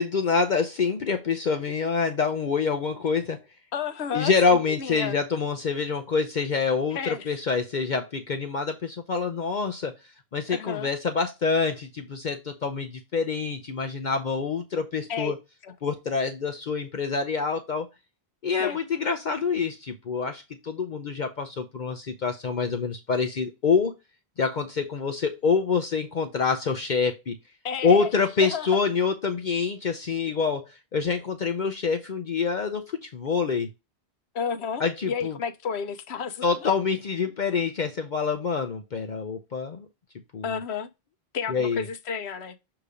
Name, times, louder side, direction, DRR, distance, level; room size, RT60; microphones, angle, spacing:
voice 1, 0.0-3.4 4.1-9.9 10.3-15.4 15.8-17.9 18.4-23.9 24.4-27.4 27.8-33.7 34.8-35.4 36.4-39.9 40.3-40.5 41.5-41.8, left 5 dB, 50° left, 0.8 m, -26 dB
voice 2, 3.7-5.2 6.9-7.4 10.5-10.9 15.1-15.3 15.6-15.7 18.6-18.8 27.6-28.1 28.4-28.8 34.3-36.7 40.4-40.9 41.3-42.7, left 6 dB, 85° left, 1.0 m, -32 dB
6.8 x 3.0 x 4.9 m
omnidirectional pair, 1.1 m